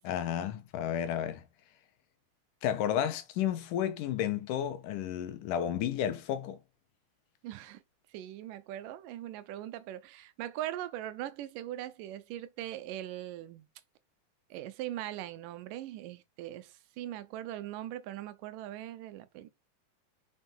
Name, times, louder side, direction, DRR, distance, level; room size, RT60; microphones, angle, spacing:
voice 1, 0.0-1.4 2.6-6.6, left 10 dB, 85° left, 2.5 m, -32 dB
voice 2, 7.4-7.8 8.1-13.7 14.5-19.5, right 13 dB, 85° right, 2.4 m, -40 dB
6.3 x 5.6 x 4.4 m
omnidirectional pair, 3.7 m